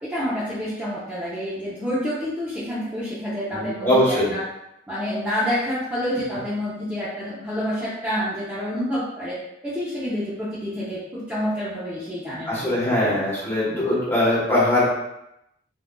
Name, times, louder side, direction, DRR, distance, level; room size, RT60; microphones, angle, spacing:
voice 1, 0.0-4.4 4.9-9.4 9.6-13.2, equal, 10° right, -11 dB, 0.6 m, -28 dB
voice 2, 3.5-4.3 12.5-14.8, left 1 dB, 15° left, -8 dB, 1.1 m, -21 dB
3.7 x 2.4 x 2.2 m, 0.85 s
head